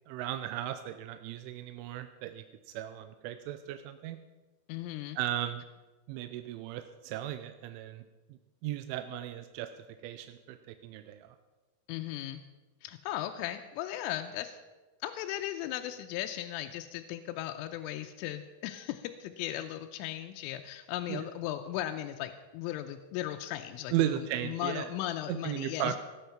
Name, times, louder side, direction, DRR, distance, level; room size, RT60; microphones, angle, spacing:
voice 1, 0.1-4.2 5.2-5.6 6.1-8.0 8.3-9.7 10.0-10.6 10.8-11.4 21.1-21.2 23.9-24.9 25.3-26.0, right 12 dB, 80° right, 9 dB, 3.0 m, -36 dB
voice 2, 4.7-5.2 11.9-12.4 12.8-14.6 15.0-26.0, left 13 dB, 90° left, 7 dB, 3.2 m, -37 dB
17.0 x 10.0 x 5.8 m, 1.2 s
omnidirectional pair, 5.8 m